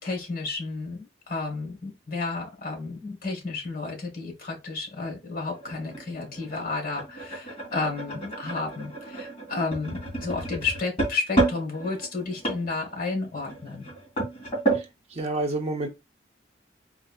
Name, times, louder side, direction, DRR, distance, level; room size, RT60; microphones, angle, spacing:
voice 1, 0.0-13.9, left 3 dB, 50° left, 1.6 m, -32 dB
sound 1, 5.1-14.9, right 2 dB, 35° left, 2.1 m, -31 dB
voice 2, 15.2-15.9, right 2 dB, 35° right, 0.7 m, -28 dB
4.3 x 2.7 x 2.4 m
head